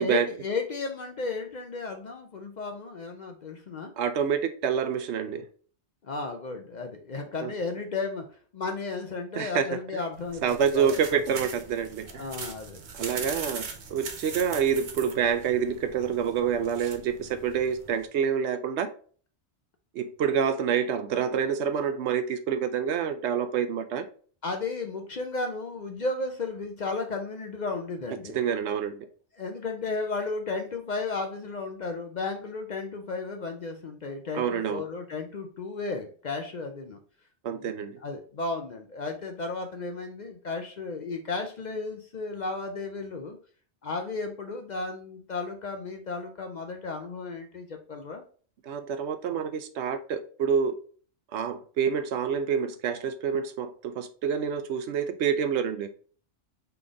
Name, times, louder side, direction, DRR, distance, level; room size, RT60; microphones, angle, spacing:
voice 1, 0.0-3.9 6.0-8.2 8.5-11.2 12.1-13.3 24.4-28.4 29.3-37.0 37.5-43.4 43.8-48.2, left 3 dB, 55° left, 0.5 m, -34 dB
voice 2, 4.0-5.5 7.4-7.5 9.4-9.6 10.4-12.2 12.9-18.9 19.9-24.0 28.3-29.1 34.3-34.8 37.4-38.0 48.7-50.7 51.3-55.9, right 7 dB, 75° right, 0.9 m, -27 dB
sound 1, 10.1-18.0, right 5 dB, 50° right, 0.7 m, -41 dB
4.0 x 3.4 x 3.6 m
omnidirectional pair, 1.2 m